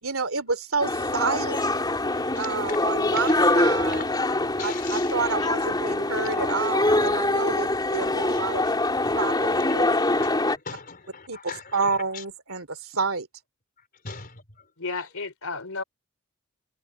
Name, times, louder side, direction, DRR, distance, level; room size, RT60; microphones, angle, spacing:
voice 1, 0.0-1.6 2.3-4.0 4.6-8.6 9.2-9.9 11.3-13.3, right 4 dB, 65° right, 3.3 m, -29 dB
sound 1, 0.8-10.6, left 2 dB, 20° left, 3.7 m, -24 dB
voice 2, 2.1-2.9 3.1-3.3 3.9-4.1 4.6-5.2 6.2-6.3 7.5-7.6 8.3-8.5 9.2-9.7 10.1-12.2 14.0-14.7, left 5 dB, 40° left, 4.8 m, -40 dB
voice 3, 14.8-15.8, left 4 dB, 70° left, 3.7 m, -33 dB
head